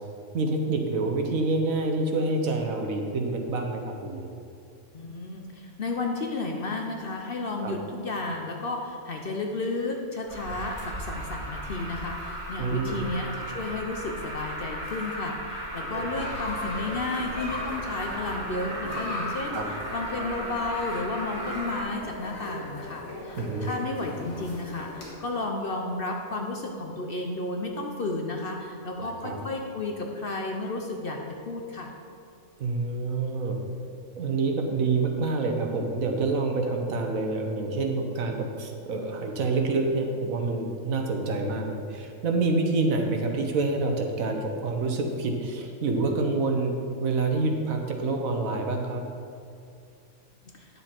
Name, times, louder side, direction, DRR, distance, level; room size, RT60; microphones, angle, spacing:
voice 1, 0.3-4.3 7.6-7.7 12.6-13.0 15.9-16.2 19.5-19.7 23.4-23.7 29.0-29.4 32.6-33.6 34.2-46.7 47.0-49.0, right 3 dB, 75° right, 3 dB, 1.4 m, -27 dB
voice 2, 4.9-19.6 19.9-31.2 31.5-31.9, left 2 dB, 50° left, 1 dB, 0.8 m, -32 dB
Alarm, 10.3-21.8, right 1 dB, 25° right, 1.8 m, -36 dB
sound 1, 16.1-25.1, left 1 dB, 70° left, 2.2 m, -38 dB
9.6 x 7.1 x 4.4 m, 2.4 s
omnidirectional pair, 1.5 m